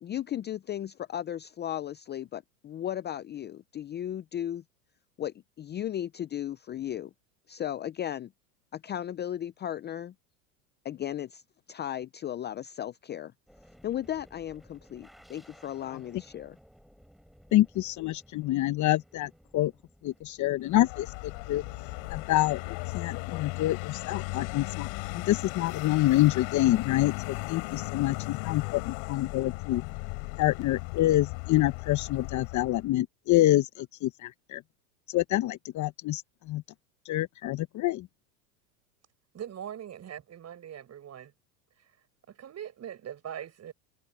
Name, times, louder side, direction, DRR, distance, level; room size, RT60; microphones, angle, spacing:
voice 1, 0.0-4.6 5.2-7.1 7.5-8.3 8.7-10.1 10.8-11.4 11.7-13.3 13.8-16.6, left 11 dB, 20° left, 0.6 m, -35 dB
sound 1, 13.5-30.4, equal, ahead, 7.4 m, -58 dB
voice 2, 17.5-19.7 20.0-21.6 22.1-24.9 25.1-29.8 30.4-34.6 35.1-36.2 36.5-36.6 37.1-38.1, left 16 dB, 40° left, 0.9 m, -27 dB
Vehicle, 20.7-32.9, left 36 dB, 60° left, 4.2 m, -37 dB
voice 3, 39.3-41.3 42.3-43.7, right 9 dB, 35° right, 7.1 m, -41 dB
hypercardioid pair, 100°, 47 cm